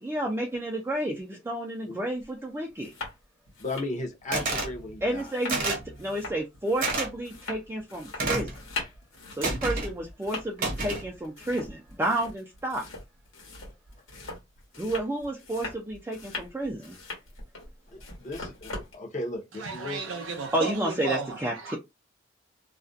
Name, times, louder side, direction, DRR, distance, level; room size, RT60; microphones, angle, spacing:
voice 1, 0.0-2.9 5.0-8.5 9.4-12.9 14.8-17.0 20.5-21.8, right 1 dB, 10° right, 0.3 m, -31 dB
sound 1, 2.2-2.3 2.7-3.2 3.5-18.9, left 3 dB, 75° left, 1.0 m, -41 dB
voice 2, 3.6-5.3 17.9-20.1, left 2 dB, 40° left, 0.6 m, -36 dB
sound 2, 4.3-4.7 5.5-5.9 6.8-7.1 8.2-8.6 9.4-9.9 10.6-11.1, right 3 dB, 45° right, 0.8 m, -29 dB
voice 3, 19.6-21.4 21.6-21.8, right 4 dB, 75° right, 0.5 m, -34 dB
2.3 x 2.1 x 2.5 m
head